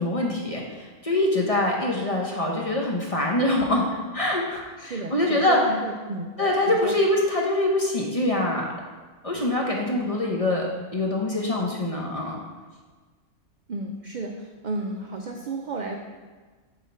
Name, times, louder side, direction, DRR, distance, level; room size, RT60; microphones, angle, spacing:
voice 1, 0.0-3.8 4.1-5.6 6.4-8.7 9.2-10.7 10.9-12.4, left 1 dB, 35° left, -1 dB, 0.7 m, -24 dB
voice 2, 4.8-6.3 6.7-6.9 13.7-16.0, right 3 dB, 65° right, 2 dB, 0.4 m, -32 dB
7.0 x 4.0 x 4.3 m, 1.4 s
omnidirectional pair, 1.4 m